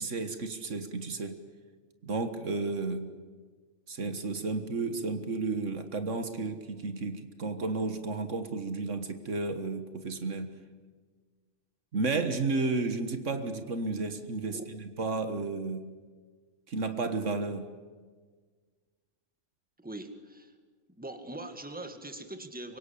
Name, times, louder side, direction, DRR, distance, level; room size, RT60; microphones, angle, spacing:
voice 1, 0.0-1.4 2.0-3.1 3.9-10.5 11.9-15.9 16.7-17.7, right 3 dB, 75° right, 8 dB, 1.9 m, -32 dB
voice 2, 19.8-20.5 20.9-22.8, right 1 dB, 5° right, 7 dB, 1.9 m, -42 dB
24.5 x 23.5 x 8.5 m, 1.5 s
omnidirectional pair, 1.3 m